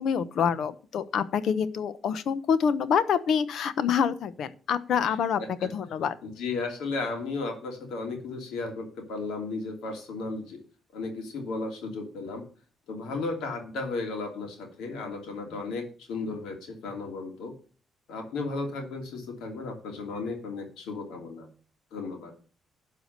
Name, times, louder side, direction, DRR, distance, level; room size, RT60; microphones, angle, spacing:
voice 1, 0.0-6.1, left 7 dB, 70° left, 15 dB, 0.9 m, -26 dB
voice 2, 5.0-5.9 6.2-10.6 10.9-12.4 12.9-17.5 18.1-21.5 21.9-22.3, left 3 dB, 85° left, 3 dB, 3.0 m, -35 dB
12.0 x 4.9 x 6.6 m, 0.40 s
cardioid pair, 90°, 0 cm